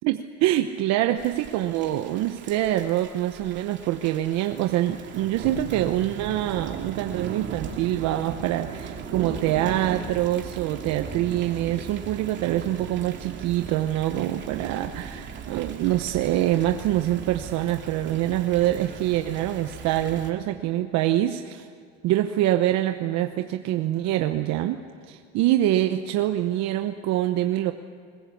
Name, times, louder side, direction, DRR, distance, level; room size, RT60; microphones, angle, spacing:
voice 1, 0.0-21.7 22.0-27.7, right 13 dB, 55° right, 7 dB, 1.0 m, -25 dB
Thunder / Rain, 1.2-20.3, right 6 dB, 35° right, 2.7 m, -38 dB
21.5 x 20.5 x 8.5 m, 2.4 s
cardioid pair, 140°, 32 cm